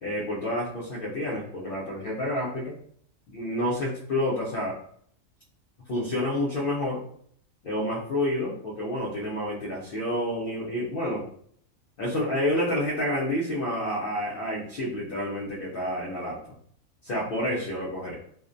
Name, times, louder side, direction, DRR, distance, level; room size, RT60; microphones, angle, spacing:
voice 1, 0.0-2.8 3.3-4.8 5.9-7.0 7.6-11.3 12.0-16.4 17.0-18.1, left 1 dB, 65° left, -5 dB, 0.5 m, -29 dB
2.5 x 2.0 x 2.5 m, 0.62 s
omnidirectional pair, 1.5 m